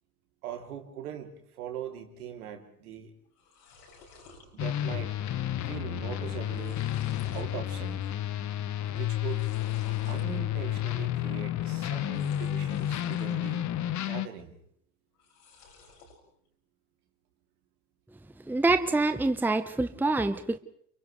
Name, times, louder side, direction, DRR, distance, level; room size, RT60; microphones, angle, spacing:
voice 1, 0.4-3.1 4.5-5.2 5.6-6.9 7.3-8.1 8.9-9.5 10.0-13.7 14.0-14.5, right 9 dB, 65° right, 4 dB, 3.2 m, -41 dB
sound 1, 2.9-3.0 3.3-4.5 4.9-5.3 5.6-5.7 6.3-7.5 8.0-8.5 9.2-10.3 12.0-13.4 13.8-14.4 15.1-16.2, left 4 dB, 70° left, 6.5 m, -54 dB
sound 2, 4.6-14.3, left 12 dB, 35° left, 1.3 m, -31 dB
voice 2, 18.5-20.6, right 2 dB, 5° right, 10 dB, 1.0 m, -26 dB
30.0 x 29.0 x 3.3 m, 0.66 s
figure-of-eight pair, 65°, 47 cm